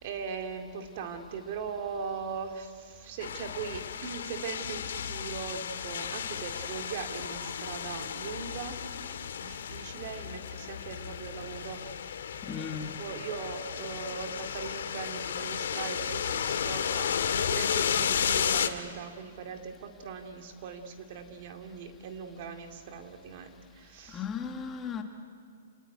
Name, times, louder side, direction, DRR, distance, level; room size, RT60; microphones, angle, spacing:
voice 1, 0.0-8.8 9.4-11.8 12.9-24.3, right 6 dB, 40° right, 5 dB, 2.4 m, -40 dB
sound 1, 3.2-18.7, left 8 dB, 75° left, 1.7 m, -33 dB
voice 2, 12.5-12.9 24.1-25.0, left 6 dB, 15° left, 5 dB, 1.2 m, -36 dB
28.0 x 19.0 x 9.6 m, 2.1 s
hypercardioid pair, 165°, 0 cm